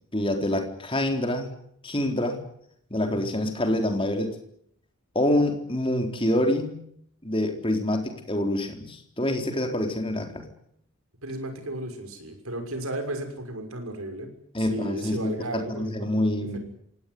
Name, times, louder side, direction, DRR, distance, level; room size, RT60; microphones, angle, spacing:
voice 1, 0.1-1.5 1.8-2.4 2.9-4.4 5.1-6.8 7.2-10.4 14.5-16.6, left 1 dB, 25° left, 5 dB, 4.1 m, -26 dB
voice 2, 3.0-3.4 11.2-16.6, right 1 dB, 75° right, 6 dB, 6.3 m, -35 dB
27.0 x 18.5 x 9.6 m, 0.70 s
head